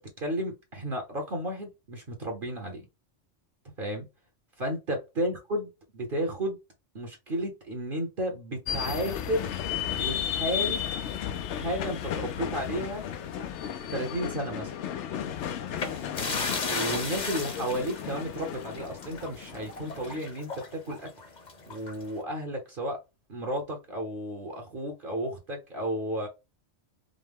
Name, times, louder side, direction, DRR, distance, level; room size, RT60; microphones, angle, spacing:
voice 1, 0.2-2.9 3.8-4.1 4.6-6.6 6.9-9.6 10.0-10.9 11.5-13.0 13.9-14.7 16.2-21.1 21.7-23.0 23.3-26.3, equal, 50° right, 2 dB, 1.2 m, -33 dB
sound 1, 8.7-20.2, left 9 dB, 75° left, 0.9 m, -34 dB
sound 2, 12.3-13.9 14.2-14.4 15.7-22.2, left 4 dB, 40° left, 0.9 m, -36 dB
5.2 x 2.2 x 3.5 m, 0.25 s
omnidirectional pair, 1.2 m